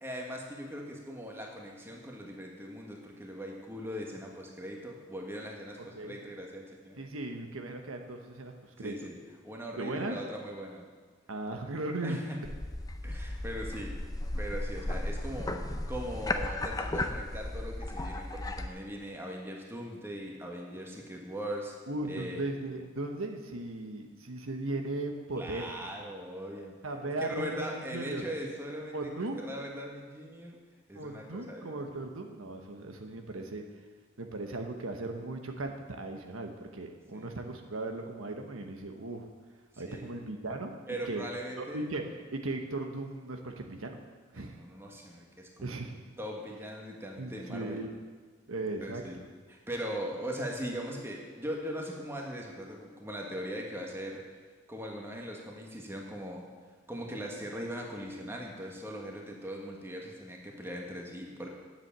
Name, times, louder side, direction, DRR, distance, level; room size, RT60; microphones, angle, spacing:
voice 1, 0.0-7.0 8.8-9.2 9.4-10.8 12.0-12.5 13.0-14.0 14.4-21.7 22.1-22.4 25.3-26.7 27.0-30.6 30.9-31.9 37.1-37.3 39.7-40.1 40.9-41.9 44.3-45.8 46.2-47.8 48.8-49.2 49.5-54.2 54.7-56.5 56.9-61.5, equal, 10° right, 0 dB, 1.4 m, -40 dB
voice 2, 7.0-8.9 9.8-10.2 11.3-12.2 21.9-25.7 26.8-28.2 28.9-29.4 30.9-33.6 34.2-39.3 39.8-40.7 41.1-41.2 41.6-42.0 42.3-44.0 44.3-44.6 45.6-45.9 47.2-47.9 48.5-49.3, right 2 dB, 85° right, 4 dB, 1.1 m, -37 dB
sound 1, 12.4-18.7, left 1 dB, 20° left, 0.6 m, -35 dB
9.6 x 7.5 x 7.4 m, 1.5 s
head